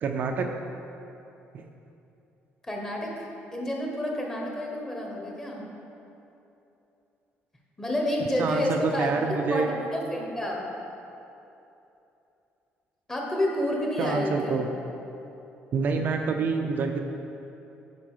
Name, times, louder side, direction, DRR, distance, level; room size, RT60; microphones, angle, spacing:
voice 1, 0.0-0.5 8.4-9.7 14.0-14.7 15.7-17.0, right 5 dB, 45° right, 4 dB, 0.5 m, -27 dB
voice 2, 2.6-5.6 7.8-10.7 13.1-14.6, left 1 dB, 10° left, -1 dB, 1.2 m, -29 dB
9.1 x 4.8 x 4.9 m, 2.9 s
cardioid pair, 155°, 4 cm